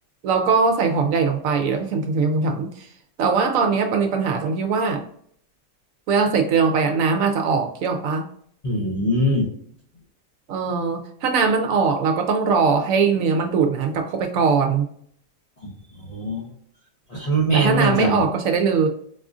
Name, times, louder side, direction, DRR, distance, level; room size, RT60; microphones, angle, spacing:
voice 1, 0.2-2.9 3.2-5.0 6.1-8.3 10.5-14.9 17.5-18.9, right 5 dB, 70° right, 5 dB, 0.9 m, -21 dB
voice 2, 8.6-9.5 15.6-15.7 16.1-16.5 17.1-18.2, right 1 dB, 40° left, -5 dB, 0.5 m, -21 dB
4.1 x 2.4 x 2.4 m, 0.63 s
omnidirectional pair, 1.6 m